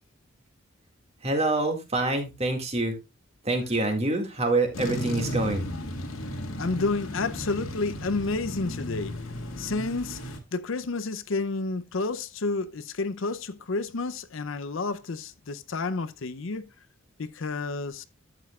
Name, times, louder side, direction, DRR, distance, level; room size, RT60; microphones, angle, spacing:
voice 1, 1.2-2.9 3.4-5.7, right 2 dB, 30° right, 2.0 m, -26 dB
sound 1, 4.7-10.4, equal, 90° left, 1.9 m, -34 dB
voice 2, 6.6-9.2 9.6-10.2 10.5-16.7 17.2-18.0, left 3 dB, 70° left, 0.6 m, -30 dB
12.0 x 7.9 x 2.4 m
head